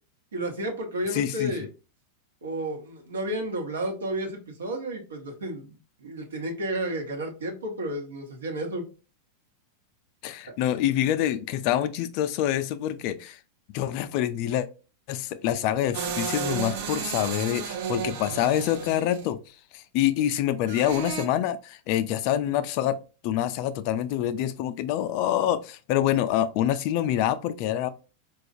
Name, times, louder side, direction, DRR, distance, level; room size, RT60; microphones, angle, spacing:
voice 1, 0.3-1.7 2.4-8.8, right 1 dB, 80° right, 0.9 m, -32 dB
voice 2, 1.1-1.5 10.2-13.4 13.7-14.7 15.1-19.4 19.7-23.0 23.2-27.9, left 11 dB, 50° left, 0.3 m, -26 dB
sound 1, 15.9-19.3 20.7-21.2, right 7 dB, 60° right, 0.6 m, -32 dB
4.2 x 2.3 x 2.5 m
hypercardioid pair, 95°, 0 cm